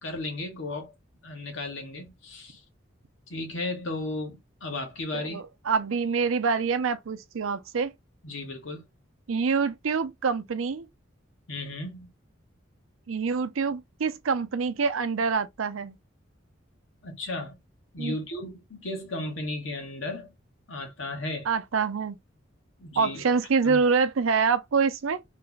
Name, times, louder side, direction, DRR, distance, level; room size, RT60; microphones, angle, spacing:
voice 1, 0.0-0.9 1.2-2.6 3.3-5.4 8.2-8.8 11.5-12.1 17.0-17.6 17.9-20.3 20.7-21.5 22.8-23.2 23.6-23.8, left 2 dB, 75° left, 1.2 m, -35 dB
voice 2, 5.1-7.9 9.3-10.9 13.1-16.0 18.0-18.2 21.5-22.2 23.0-25.2, right 5 dB, 85° right, 0.5 m, -26 dB
3.2 x 2.2 x 3.9 m
head